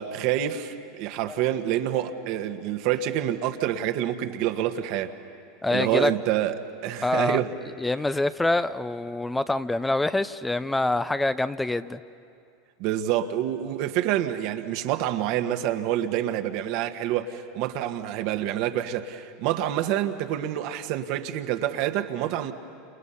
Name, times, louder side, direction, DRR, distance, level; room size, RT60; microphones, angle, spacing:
voice 1, 0.0-5.1 5.7-6.6 6.8-7.5 12.8-22.5, right 12 dB, 60° right, 7 dB, 1.4 m, -27 dB
voice 2, 5.6-6.1 7.0-7.4 7.8-12.0, left 2 dB, 10° left, 13 dB, 0.6 m, -25 dB
29.5 x 28.5 x 5.7 m, 2.4 s
hypercardioid pair, 95°, 0 cm